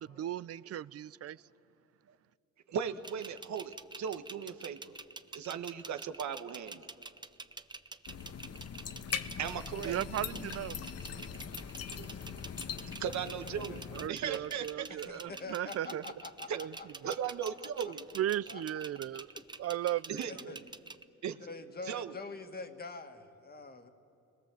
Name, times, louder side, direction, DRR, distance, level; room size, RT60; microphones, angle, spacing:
voice 1, 0.0-1.4 9.8-10.8 13.9-16.0 16.6-16.7 18.1-19.3 19.6-20.2 20.4-20.6, right 12 dB, 55° right, 0.5 m, -36 dB
voice 2, 2.7-4.9 5.3-6.9 9.4-10.0 11.9-12.1 13.0-13.8 14.1-14.9 16.5-16.6 17.0-18.1 20.1-20.3 21.2-21.4 21.9-22.1, right 8 dB, 70° right, 1.3 m, -37 dB
sound 1, 3.0-21.0, right 3 dB, 15° right, 0.8 m, -47 dB
sound 2, 8.1-14.1, left 7 dB, 55° left, 1.2 m, -41 dB
voice 3, 13.2-14.0 14.9-17.3 17.8-17.9 18.5-18.6 19.3-19.5 20.3-20.6 21.4-23.9, left 3 dB, 30° left, 2.0 m, -46 dB
30.0 x 21.5 x 7.7 m
cardioid pair, 90°, 30 cm